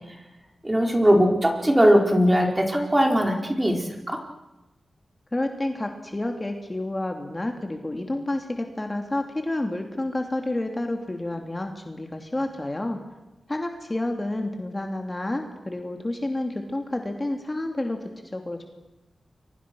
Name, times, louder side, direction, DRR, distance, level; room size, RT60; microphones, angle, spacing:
voice 1, 0.6-4.2, equal, 15° right, 2 dB, 4.7 m, -20 dB
voice 2, 5.3-13.0 13.5-18.6, left 1 dB, 25° left, 4 dB, 2.7 m, -29 dB
29.0 x 23.5 x 6.3 m, 1.0 s
cardioid pair, 70°, 0 cm